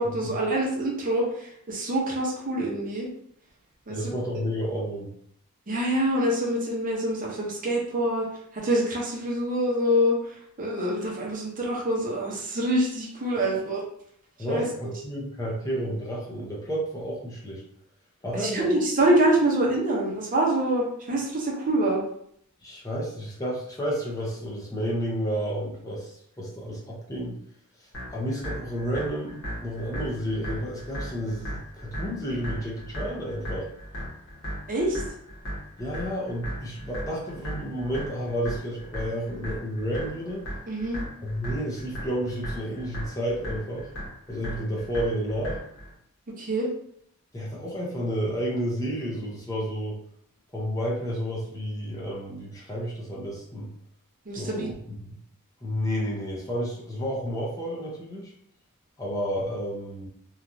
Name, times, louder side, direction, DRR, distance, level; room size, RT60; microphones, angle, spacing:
voice 1, 0.0-3.1 3.9-4.0 5.7-8.3 8.5-13.8 14.5-14.7 18.3-22.0 34.7-35.0 40.7-41.0 46.4-46.7 54.3-54.7, right 1 dB, 40° right, -2 dB, 0.7 m, -25 dB
voice 2, 3.9-5.1 13.5-13.6 14.4-17.6 18.2-18.7 22.6-27.4 27.8-33.7 35.8-40.5 41.2-43.9 44.3-45.6 47.3-50.0 50.5-53.7 54.4-54.7 55.0-55.2 55.6-58.3 59.0-60.1, equal, 15° left, -5 dB, 0.6 m, -31 dB
sound 1, 27.9-45.9, equal, 65° left, 1.2 m, -37 dB
3.0 x 2.3 x 2.6 m, 0.68 s
head